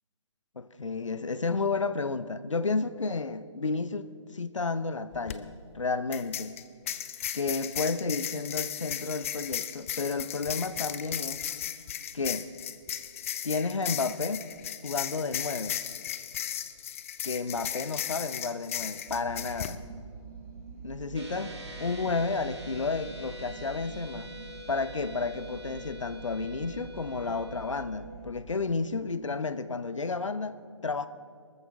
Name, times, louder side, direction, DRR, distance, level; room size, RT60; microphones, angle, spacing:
voice 1, 0.6-6.6 7.3-11.4 12.1-12.5 13.4-14.5 14.8-15.8 17.2-19.8 20.8-24.3 24.7-31.1, left 4 dB, 75° left, 14 dB, 0.8 m, -32 dB
sound 1, 5.1-5.4 6.1-19.8, left 11 dB, 25° left, 0.5 m, -36 dB
sound 2, 19.1-28.3, right 6 dB, 30° right, 1.6 m, -46 dB
sound 3, 21.2-27.9, left 1 dB, 60° right, 2.4 m, -45 dB
23.0 x 14.0 x 3.6 m, 2.4 s
figure-of-eight pair, 140°, 16 cm